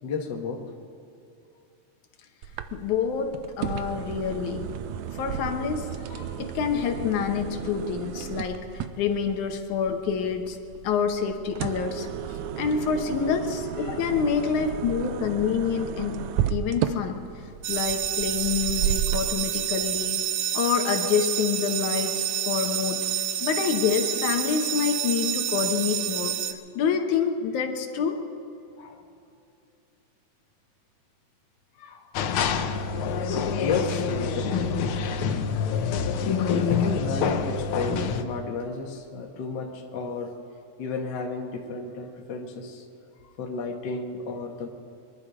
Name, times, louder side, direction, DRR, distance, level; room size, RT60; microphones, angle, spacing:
voice 1, 0.0-0.6 13.8-14.0 28.8-29.0 31.8-32.0 33.6-34.9 36.7-40.3 40.8-42.8 43.2-44.7, left 4 dB, 45° left, 1 dB, 1.8 m, -33 dB
sound 1, 2.4-19.3, right 10 dB, 90° right, 2.0 m, -33 dB
voice 2, 2.7-4.7 5.1-10.6 10.8-12.1 12.6-17.2 17.7-23.1 23.4-26.4 26.8-28.2, left 7 dB, 90° left, 5 dB, 2.6 m, -27 dB
sound 2, 17.6-26.5, right 10 dB, 70° right, 1.7 m, -28 dB
sound 3, 32.1-38.2, left 6 dB, 75° left, 1.3 m, -26 dB
23.5 x 11.5 x 5.0 m, 2.6 s
omnidirectional pair, 3.3 m